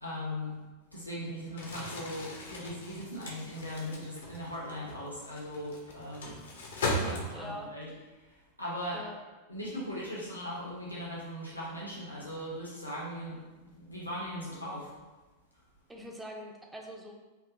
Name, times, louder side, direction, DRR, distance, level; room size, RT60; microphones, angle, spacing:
voice 1, 0.0-0.5 0.9-6.4 6.9-9.0 9.5-14.9, equal, 85° left, -6 dB, 1.0 m, -39 dB
Crumpling crinkling, 1.5-7.7, left 1 dB, 65° left, 0.7 m, -38 dB
voice 2, 7.3-7.7 8.9-9.2 15.9-17.1, equal, 10° right, 1 dB, 0.6 m, -43 dB
4.6 x 2.8 x 2.5 m, 1.2 s
figure-of-eight pair, 90°, 0 cm